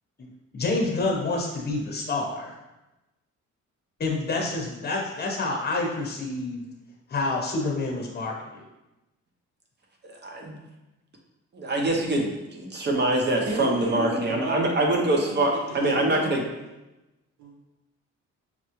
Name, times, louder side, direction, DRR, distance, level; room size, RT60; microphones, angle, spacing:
voice 1, 0.2-2.6 4.0-6.6 7.1-8.6, left 3 dB, 35° left, 0 dB, 1.1 m, -28 dB
voice 2, 10.1-10.5 11.5-16.4, right 1 dB, 35° right, 1 dB, 0.8 m, -24 dB
voice 3, 13.4-14.7 15.1-15.8 16.1-16.2 17.4-17.5, right 2 dB, 65° right, -4 dB, 1.2 m, -33 dB
5.7 x 2.2 x 3.1 m, 1.0 s
cardioid pair, 90°, 30 cm